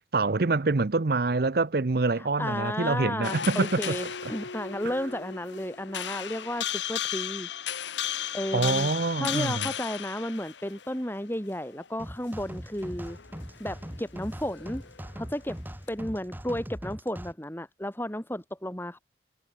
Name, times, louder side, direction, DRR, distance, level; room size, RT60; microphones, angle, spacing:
voice 1, 0.1-3.9 8.5-9.7, right 3 dB, 55° right, 0.7 m, -25 dB
voice 2, 2.1-7.5 8.3-8.9 9.2-13.2 13.6-14.8 15.1-15.6 15.9-19.0, left 1 dB, 10° left, 4.2 m, -33 dB
sound 1, 3.2-11.5 11.8-12.0 13.0-15.4 15.9-16.0, left 10 dB, 85° left, 1.0 m, -35 dB
sound 2, 12.0-17.3, equal, 10° right, 3.0 m, -41 dB
head